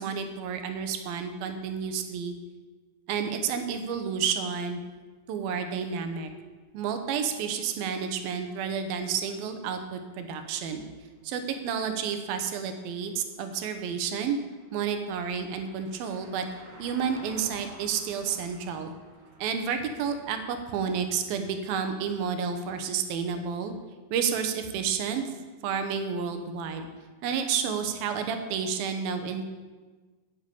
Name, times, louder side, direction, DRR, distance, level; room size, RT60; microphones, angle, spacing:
voice 1, 0.0-2.3 3.1-4.8 5.3-6.3 6.7-10.8 11.2-14.4 14.7-16.5 16.8-18.9 19.4-23.7 24.1-26.9 27.2-29.5, right 6 dB, 85° right, 7 dB, 2.8 m, -30 dB
sound 1, 7.8-7.9 8.1-8.3 10.7-10.8 11.0-21.2, right 1 dB, 50° right, 4.1 m, -53 dB
8.6 x 8.0 x 8.5 m, 1.3 s
omnidirectional pair, 4.1 m